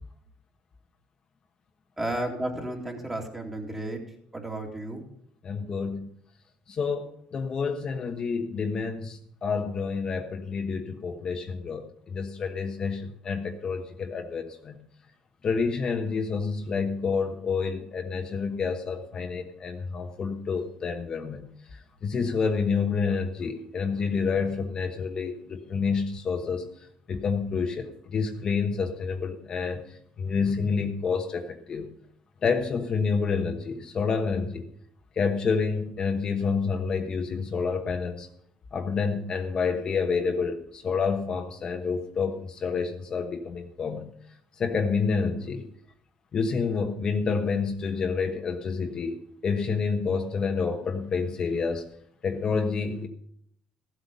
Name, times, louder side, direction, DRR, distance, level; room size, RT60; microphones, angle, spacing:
voice 1, 2.0-4.0 4.3-5.0, right 1 dB, 15° right, 1 dB, 2.6 m, -32 dB
voice 2, 5.4-6.1 6.7-14.8 15.4-21.4 21.7-26.7 27.1-29.8 30.2-31.9 32.4-34.7 35.2-38.3 38.7-44.1 44.6-45.7 46.3-51.8 52.2-53.1, left 5 dB, 40° left, 4 dB, 1.2 m, -28 dB
15.0 x 8.2 x 5.4 m, 0.68 s
cardioid pair, 125°, 2 cm